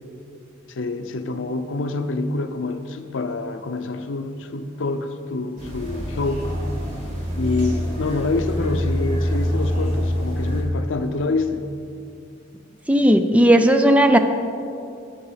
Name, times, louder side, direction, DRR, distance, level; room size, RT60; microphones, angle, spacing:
voice 1, 0.7-6.5 7.4-11.7, left 3 dB, 85° left, 9 dB, 0.6 m, -26 dB
sound 1, 5.6-10.6, equal, 40° right, 2.8 m, -25 dB
voice 2, 12.9-14.2, right 1 dB, 5° right, 7 dB, 0.4 m, -15 dB
11.5 x 8.9 x 4.0 m, 2.6 s
head